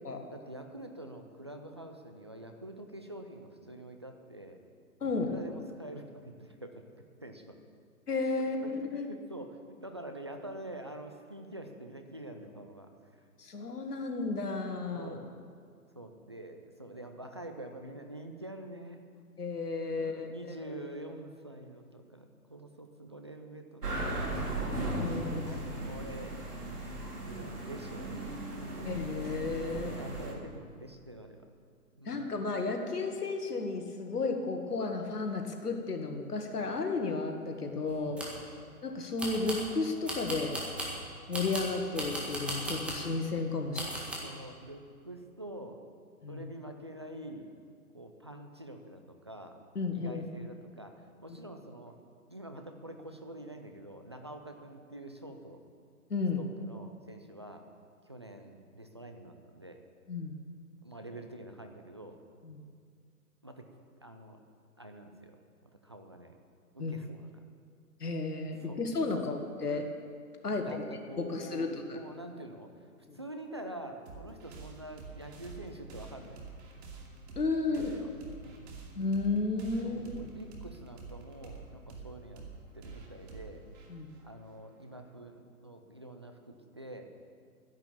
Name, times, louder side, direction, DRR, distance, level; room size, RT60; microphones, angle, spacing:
voice 1, 0.3-4.6 5.1-6.8 7.2-7.6 8.6-12.9 14.9-15.3 16.0-19.0 19.9-24.6 25.0-26.4 27.2-28.2 28.6-28.9 29.7-31.4 32.0-32.3 37.9-38.4 43.7-45.8 46.3-47.5 47.9-49.6 49.9-51.9 52.3-55.6 56.4-57.6 58.1-59.8 60.8-62.2 63.4-63.6 64.0-64.4 64.8-65.4 65.8-66.4 66.7-67.3 68.7-68.8 69.2-69.3 70.5-71.7 71.9-72.7 73.1-76.4 77.7-78.1 78.4-78.7 79.8-82.4 82.7-83.7 84.2-87.1, right 1 dB, 20° right, 4 dB, 0.4 m, -46 dB
voice 2, 5.0-5.3 8.1-9.1 13.4-15.1 19.4-20.3 20.7-20.8 24.9-25.4 28.9-30.1 32.1-38.2 38.8-40.6 41.3-43.8 46.2-46.4 49.8-50.2 56.1-56.4 60.1-60.4 62.4-62.7 66.8-67.0 68.0-69.9 70.4-70.8 71.2-72.0 73.1-73.2 77.4-77.9 79.0-80.2 83.9-84.1, left 3 dB, 85° left, 4 dB, 1.9 m, -33 dB
sound 1, 23.8-30.3, right 1 dB, 85° right, 3.1 m, -37 dB
sound 2, 37.9-38.4 39.2-39.7 40.1-41.0 41.3-43.1 43.7-44.1, equal, ahead, 1.7 m, -37 dB
sound 3, 74.1-85.1, right 4 dB, 45° right, 2.7 m, -48 dB
12.5 x 10.5 x 7.2 m, 2.2 s
hypercardioid pair, 135°, 45 cm